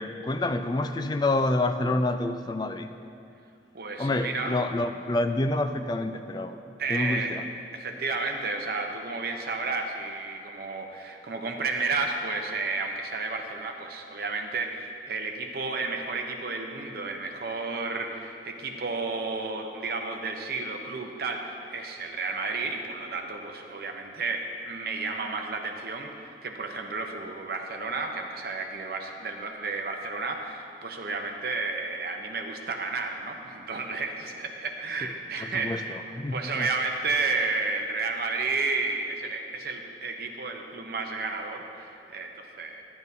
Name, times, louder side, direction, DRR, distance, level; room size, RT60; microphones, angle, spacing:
voice 1, 0.0-2.9 4.0-6.6 6.9-7.4 35.4-36.7, left 2 dB, 20° left, 8 dB, 0.3 m, -28 dB
voice 2, 3.7-4.6 6.8-7.4 7.7-36.0 36.3-42.8, right 3 dB, 55° right, 3 dB, 0.7 m, -32 dB
12.0 x 10.5 x 2.7 m, 2.5 s
head